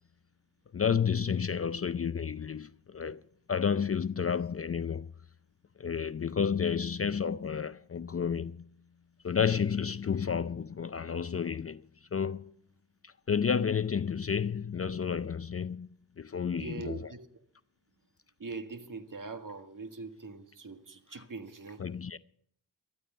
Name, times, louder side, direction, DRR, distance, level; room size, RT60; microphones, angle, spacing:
voice 1, 0.7-3.2 3.5-5.1 5.8-8.7 9.2-11.8 12.1-12.5 13.0-17.1 21.1-21.2 21.8-22.2, left 7 dB, 35° left, 0.5 m, -31 dB
voice 2, 16.6-17.3 18.4-21.8, right 4 dB, 45° right, 1.7 m, -42 dB
13.5 x 13.0 x 5.5 m
cardioid pair, 50°, 43 cm